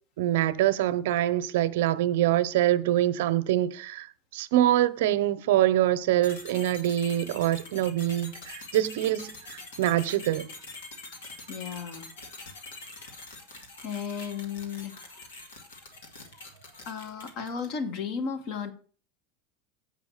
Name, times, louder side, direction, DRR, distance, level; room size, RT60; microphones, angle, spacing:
voice 1, 0.2-4.1 4.3-10.5, right 13 dB, 80° right, 0.7 m, -25 dB
sound 1, 6.2-17.8, left 3 dB, 90° left, 2.5 m, -44 dB
voice 2, 11.5-12.1 13.8-15.1 16.9-18.7, left 6 dB, 55° left, 1.7 m, -34 dB
8.1 x 5.7 x 6.5 m
supercardioid pair, 115°, 0 cm